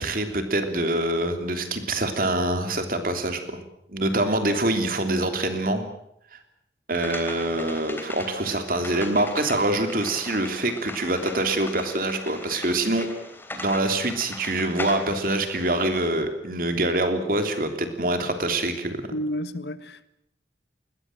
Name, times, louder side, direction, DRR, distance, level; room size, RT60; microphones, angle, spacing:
voice 1, 0.0-3.6 3.9-5.8 6.3-6.4 6.9-13.1 13.5-19.1, right 1 dB, 50° right, 3.1 m, -25 dB
sound 1, 6.9-16.1, left 2 dB, 10° left, 3.3 m, -39 dB
voice 2, 19.1-20.1, equal, 65° left, 1.4 m, -31 dB
20.5 x 20.0 x 9.1 m
head